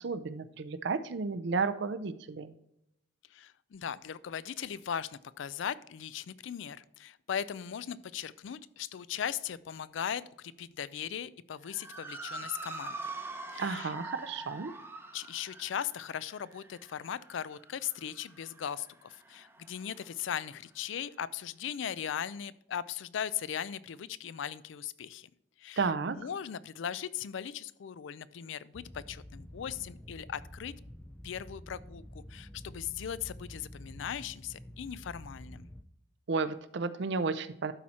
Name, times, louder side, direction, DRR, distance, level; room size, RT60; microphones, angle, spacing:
voice 1, 0.0-2.5 13.6-14.7 25.8-26.2 36.3-37.7, right 4 dB, 65° right, 13 dB, 0.5 m, -32 dB
voice 2, 3.3-13.0 13.5-13.9 15.1-25.3 25.6-30.7 31.2-35.7, left 9 dB, 70° left, 18 dB, 0.4 m, -38 dB
Motor vehicle (road) / Siren, 11.6-20.2, right 3 dB, 15° right, 0.8 m, -45 dB
sound 1, 28.7-35.8, equal, 10° left, 0.4 m, -48 dB
12.0 x 4.3 x 4.2 m, 0.78 s
head